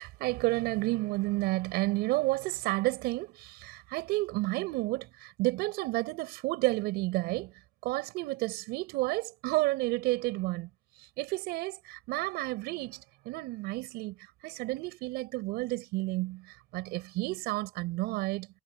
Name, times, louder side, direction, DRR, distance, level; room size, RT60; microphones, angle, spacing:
voice 1, 0.0-7.5 7.8-10.7 11.0-14.2 14.4-18.5, right 20 dB, 80° right, 6.6 m, -31 dB
supercardioid pair, 60°, 16 cm